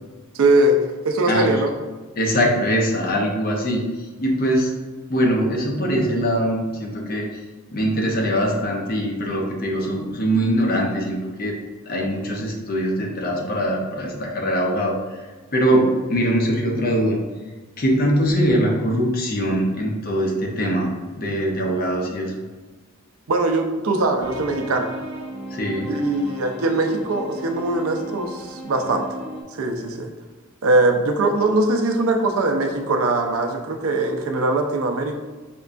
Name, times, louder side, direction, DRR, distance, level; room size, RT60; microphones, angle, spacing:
voice 1, 0.3-0.8 1.0-1.7 23.3-24.9 25.9-29.0 29.6-30.1 30.6-35.1, right 2 dB, 75° right, 4 dB, 0.5 m, -21 dB
voice 2, 2.2-4.7 5.1-7.4 7.7-11.5 11.9-17.2 17.8-20.9 21.2-22.3 25.5-25.9, equal, 45° left, 0 dB, 0.6 m, -22 dB
sound 1, 24.2-29.4, right 1 dB, 20° left, 0.9 m, -35 dB
5.1 x 2.2 x 2.5 m, 1.3 s
head